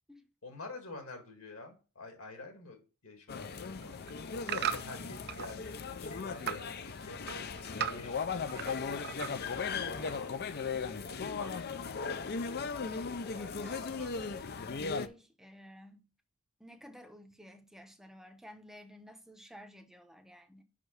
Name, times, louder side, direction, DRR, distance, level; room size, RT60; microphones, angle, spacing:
voice 1, 0.4-4.0 4.3-7.4 7.9-10.3 11.1-14.3, left 2 dB, 65° left, 2.0 m, -49 dB
sound 1, 3.3-15.1, left 5 dB, 45° left, 0.5 m, -37 dB
sound 2, 3.7-5.5 5.9-6.7 7.0-8.8 9.0-9.6 10.1-10.2, right 8 dB, 45° right, 0.5 m, -38 dB
voice 2, 9.8-10.2 13.2-14.5 14.8-16.1 16.6-20.6, equal, ahead, 0.8 m, -53 dB
5.5 x 5.0 x 6.3 m
head